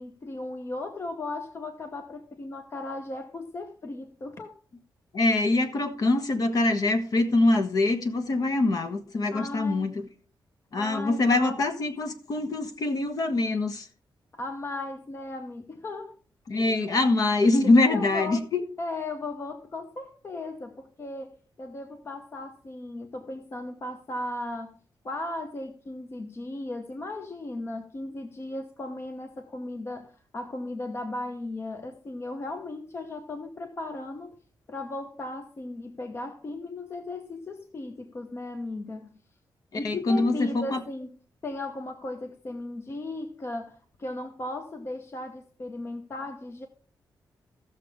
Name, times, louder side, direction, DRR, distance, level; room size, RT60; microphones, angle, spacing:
voice 1, 0.0-4.6 9.3-9.9 10.7-11.6 14.3-16.2 17.9-18.5 18.8-24.8 25.0-34.4 34.7-39.1 39.7-41.2 41.4-46.7, left 2 dB, 35° left, 0.9 m, -36 dB
voice 2, 5.1-9.9 10.7-13.9 16.5-18.6 39.8-40.8, left 2 dB, 50° left, 1.3 m, -24 dB
15.0 x 6.7 x 3.5 m
wide cardioid pair, 125°, 8 cm